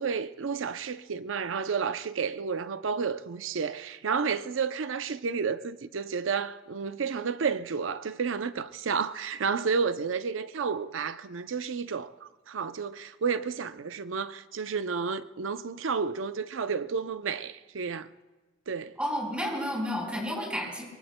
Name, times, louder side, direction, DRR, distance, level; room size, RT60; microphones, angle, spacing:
voice 1, 0.0-18.1 18.7-18.9, right 5 dB, 80° right, 0.6 m, -31 dB
voice 2, 19.0-20.8, equal, 5° right, 4.4 m, -31 dB
23.5 x 23.5 x 2.2 m
head